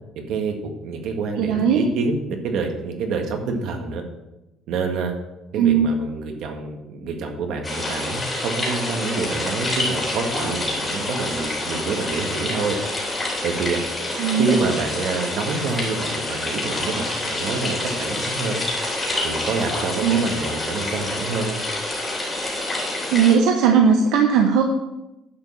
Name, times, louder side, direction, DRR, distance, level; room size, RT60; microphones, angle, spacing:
voice 1, 0.2-4.0 4.7-5.1 5.5-12.8 13.4-13.8 14.4-18.6 19.2-21.6, right 4 dB, 60° right, 4 dB, 1.8 m, -27 dB
voice 2, 1.4-1.9 5.6-5.9 14.2-14.5 20.0-20.2 23.1-24.6, right 7 dB, 80° right, 3 dB, 1.0 m, -18 dB
sound 1, 7.6-23.3, left 1 dB, 15° left, 3.3 m, -27 dB
10.5 x 5.5 x 7.1 m, 0.97 s
cardioid pair, 160°, 0 cm